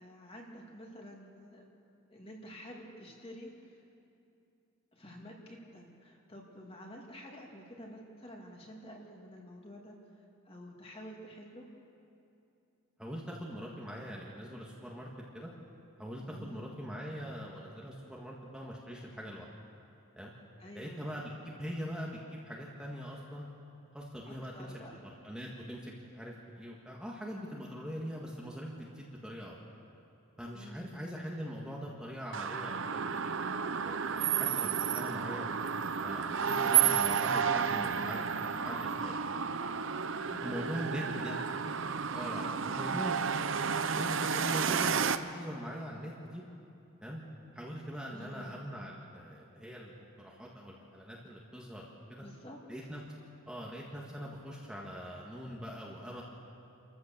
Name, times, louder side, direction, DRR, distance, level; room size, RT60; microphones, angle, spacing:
voice 1, 0.0-1.7 2.1-3.8 4.9-9.9 10.4-11.6 16.3-16.7 20.6-21.1 24.2-25.0 30.5-31.0 40.2-42.0 42.3-43.2 48.1-48.6 52.2-52.6, equal, 25° left, -1 dB, 2.5 m, -49 dB
voice 2, 13.0-15.1 15.3-15.5 16.0-19.5 20.2-20.3 20.7-23.5 23.9-24.7 25.2-29.6 30.4-33.4 33.8-35.5 36.0-39.2 40.4-41.4 42.1-43.2 44.0-46.4 47.0-47.2 47.5-52.2 52.7-53.0 53.5-56.2, equal, 5° right, -4 dB, 1.7 m, -42 dB
sound 1, 32.3-45.2, right 7 dB, 60° right, 0.7 m, -31 dB
28.0 x 14.5 x 6.9 m, 2.7 s
head